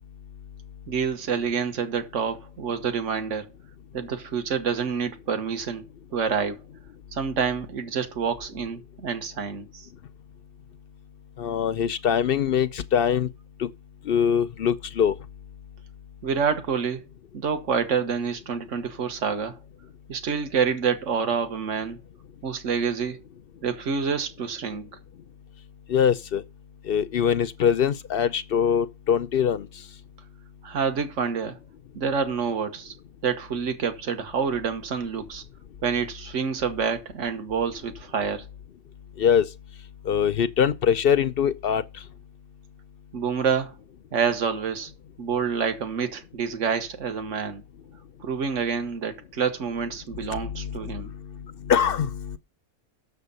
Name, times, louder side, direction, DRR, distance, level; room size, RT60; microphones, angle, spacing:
voice 1, 0.9-3.5 3.9-5.9 6.1-6.6 7.1-9.9 16.2-17.0 17.3-19.6 20.1-22.0 22.4-23.2 23.6-24.9 30.6-31.6 31.9-32.9 33.2-35.4 35.8-38.5 43.1-43.7 44.1-44.9 45.2-47.6 48.2-51.1, right 6 dB, 60° right, 1.5 m, -27 dB
voice 2, 11.4-13.3 13.6-13.7 14.0-15.1 25.9-26.4 26.8-29.7 39.2-39.5 40.0-41.8 50.3-52.4, left 8 dB, 60° left, 0.6 m, -23 dB
7.9 x 6.8 x 5.3 m
omnidirectional pair, 1.5 m